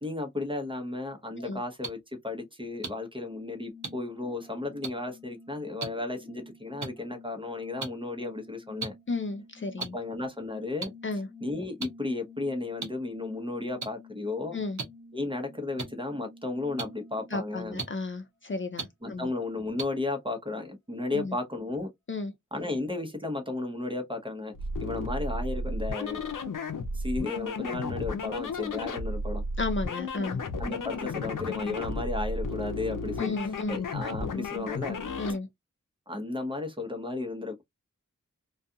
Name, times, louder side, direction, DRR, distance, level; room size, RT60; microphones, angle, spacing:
voice 1, 0.0-8.9 9.9-14.6 15.1-17.8 19.0-21.9 22.5-24.5 24.8-26.2 26.9-29.4 30.6-35.0 36.1-37.6, left 2 dB, 15° right, 0.8 m, -34 dB
sound 1, 1.8-1.9 2.8-2.9 3.8-3.9 4.8-4.9 5.8-5.9 6.8-6.9 7.8-7.9 8.8-8.9 9.8-9.9 10.8-10.9 11.8-11.9 12.8-12.9 13.8-13.9 14.8-14.9 15.8-15.9 16.8-16.9 17.8-17.9 18.8-18.9 19.8-19.9, right 4 dB, 65° right, 0.8 m, -33 dB
sound 2, 3.7-18.1, left 2 dB, 10° left, 1.1 m, -51 dB
voice 2, 9.1-10.0 11.0-11.3 14.5-14.8 17.3-19.3 21.1-21.3 22.1-22.3 29.6-30.4 33.2-33.8 35.2-35.5, left 3 dB, 40° left, 0.5 m, -33 dB
sound 3, 24.5-35.4, left 2 dB, 80° left, 0.6 m, -33 dB
2.4 x 2.3 x 2.7 m
wide cardioid pair, 70°, 31 cm